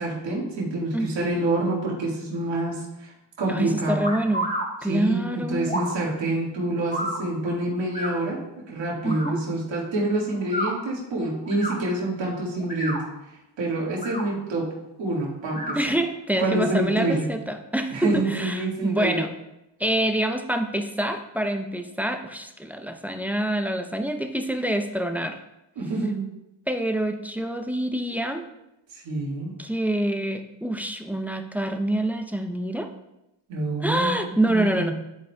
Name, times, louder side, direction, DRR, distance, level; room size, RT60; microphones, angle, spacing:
voice 1, 0.0-4.1 4.8-13.0 13.6-14.7 15.0-16.0 16.4-17.3 17.9-19.3 25.8-26.3 28.9-29.5 33.5-34.9, right 2 dB, 80° right, -4 dB, 1.9 m, -27 dB
voice 2, 0.9-1.3 3.5-4.5 4.8-5.7 9.0-9.4 15.7-19.3 19.8-25.4 26.7-28.4 29.6-32.9 33.8-34.9, right 1 dB, 5° right, 6 dB, 0.6 m, -26 dB
sound 1, 4.0-4.7 5.6-6.0 6.9-7.2 7.9-8.1 9.0-9.3 10.4-10.7 11.5-11.8 12.6-13.0 13.9-14.2 15.5-15.8, equal, 20° left, 2.1 m, -30 dB
11.5 x 4.2 x 2.3 m, 0.91 s
cardioid pair, 55°, 44 cm